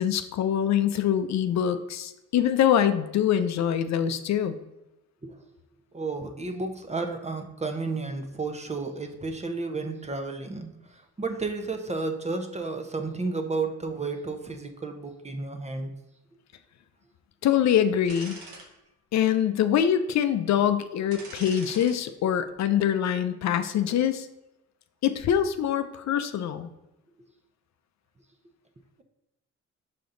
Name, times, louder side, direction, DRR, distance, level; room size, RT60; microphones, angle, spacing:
voice 1, 0.0-4.6 17.4-18.4 19.1-24.3 25.0-26.7, left 9 dB, 65° left, 10 dB, 0.6 m, -24 dB
voice 2, 5.9-10.7 11.2-15.9, right 3 dB, 20° right, 6 dB, 0.9 m, -32 dB
sound 1, 18.0-18.7 19.1-19.2 21.1-21.9 22.3-22.5, right 3 dB, 80° right, 1.5 m, -43 dB
5.8 x 5.1 x 3.8 m, 0.95 s
cardioid pair, 90°, 30 cm